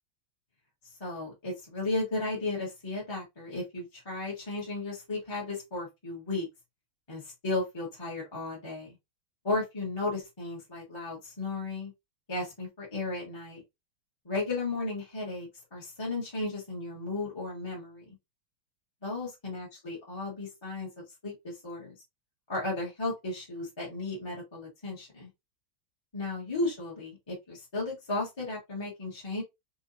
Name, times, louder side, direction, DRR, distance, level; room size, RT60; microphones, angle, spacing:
voice 1, 1.0-6.5 7.1-9.0 9.4-11.9 12.3-13.6 14.2-18.2 19.0-21.9 22.5-25.3 26.1-29.4, left 2 dB, 20° left, 0.8 m, -34 dB
3.8 x 2.7 x 2.6 m
omnidirectional pair, 2.4 m